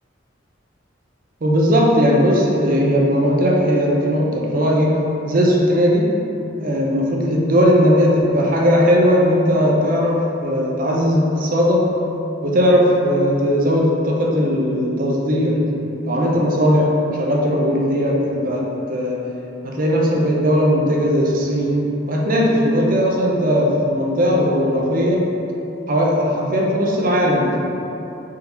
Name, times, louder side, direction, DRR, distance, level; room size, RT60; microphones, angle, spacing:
voice 1, 1.4-6.2 6.6-11.9 12.4-15.7 16.1-19.2 19.6-25.3 25.9-27.6, equal, 45° right, -2 dB, 0.6 m, -18 dB
4.1 x 3.6 x 2.9 m, 2.9 s
head